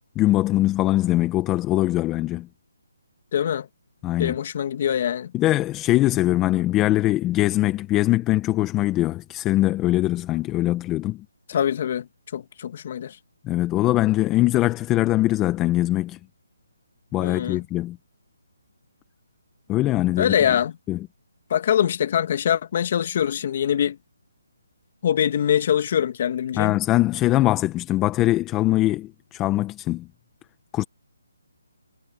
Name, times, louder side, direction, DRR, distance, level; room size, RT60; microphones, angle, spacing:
voice 1, 0.1-2.5 4.0-4.4 5.3-11.2 13.4-16.2 17.1-18.0 19.7-20.3 20.9-21.1 26.5-30.1 30.7-30.8, left 16 dB, 15° left, 1.1 m, -22 dB
voice 2, 3.3-3.7 4.2-5.3 11.5-12.1 12.3-13.2 17.2-17.6 20.2-20.7 21.5-24.0 25.0-26.8, left 9 dB, 40° left, 1.7 m, -23 dB
hypercardioid pair, 155°, 0 cm